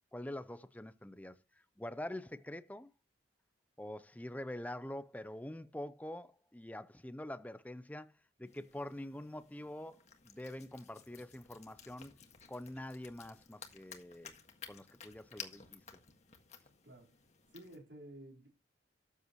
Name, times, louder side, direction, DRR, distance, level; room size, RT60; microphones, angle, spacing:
voice 1, 0.1-1.4 1.8-2.9 3.8-8.1 8.4-12.1 12.5-14.4 14.7-15.8, left 1 dB, 10° left, 0.5 m, -45 dB
sound 1, 8.4-17.8, left 7 dB, 35° left, 1.7 m, -55 dB
voice 2, 17.5-18.5, right 1 dB, 70° right, 4.1 m, -52 dB
13.0 x 8.1 x 3.0 m
head